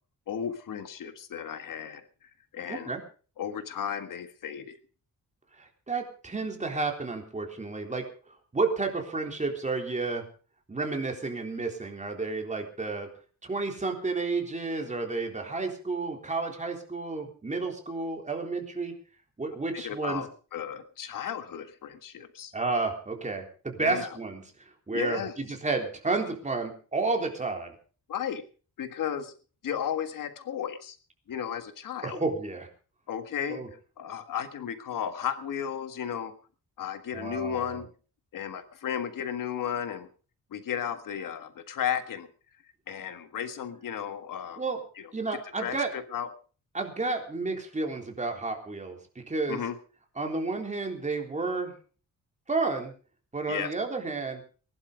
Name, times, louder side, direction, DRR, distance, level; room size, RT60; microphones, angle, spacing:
voice 1, 0.3-2.0 2.5-2.9 3.4-4.8 19.7-22.5 23.8-24.2 24.9-25.3 28.1-28.5 28.8-29.3 29.6-31.0 31.3-32.2 33.1-33.7 34.0-36.3 36.8-37.9 38.3-40.1 40.5-42.3 42.9-44.6 45.0-45.1 45.6-46.3 49.5-49.8 53.5-53.7, left 8 dB, 70° left, 9 dB, 1.7 m, -34 dB
voice 2, 2.7-3.0 5.6-8.0 8.5-10.2 10.7-13.1 13.4-18.9 19.4-20.2 22.5-24.4 24.9-27.7 32.0-32.7 33.5-33.7 37.1-37.8 44.6-44.8 45.1-45.9 46.7-49.6 50.2-51.7 52.5-52.9 53.3-54.4, right 3 dB, 20° right, 3 dB, 3.7 m, -31 dB
20.0 x 11.5 x 5.1 m, 0.40 s
wide cardioid pair, 135°, 33 cm